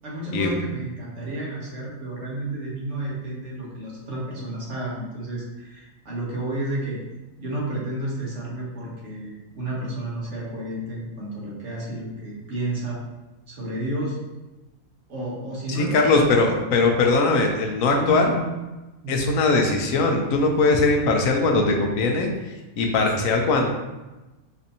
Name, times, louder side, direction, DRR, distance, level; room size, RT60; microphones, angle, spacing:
voice 1, 0.0-7.0 7.4-13.0 13.5-14.2 15.1-16.5 17.9-18.4 19.0-19.4, right 1 dB, 60° right, -5 dB, 1.3 m, -31 dB
voice 2, 15.8-18.3 19.1-22.3 22.8-23.7, left 3 dB, 80° left, 2 dB, 1.0 m, -20 dB
4.2 x 2.6 x 2.7 m, 1.1 s
omnidirectional pair, 1.4 m